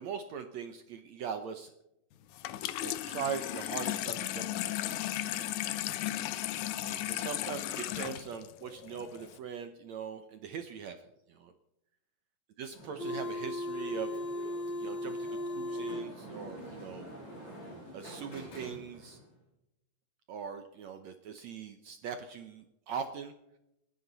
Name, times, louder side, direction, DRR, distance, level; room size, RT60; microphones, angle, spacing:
voice 1, 0.0-1.7 2.8-5.5 6.8-11.5 12.6-14.1 14.8-17.1 17.9-19.2 20.3-23.3, right 7 dB, 80° right, 8 dB, 1.5 m, -41 dB
Water tap faucet / Sink (filling or washing), 2.3-9.4, left 13 dB, 80° left, 1.7 m, -35 dB
sound 1, 12.7-19.2, left 1 dB, 45° left, 9.3 m, -39 dB
29.0 x 11.0 x 4.1 m, 0.86 s
omnidirectional pair, 4.4 m